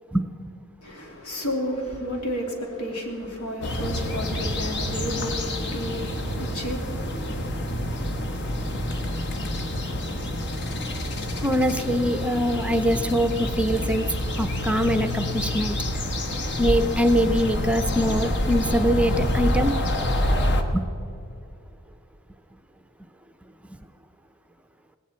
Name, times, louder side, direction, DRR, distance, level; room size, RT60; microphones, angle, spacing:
voice 1, 0.8-7.4, equal, 85° left, 3.0 m, -32 dB
sound 1, 3.6-20.6, left 1 dB, 55° left, 1.3 m, -27 dB
voice 2, 11.4-14.1 14.4-15.8 16.6-19.7 20.7-20.9, equal, 5° right, 0.6 m, -23 dB
19.5 x 17.0 x 4.4 m
head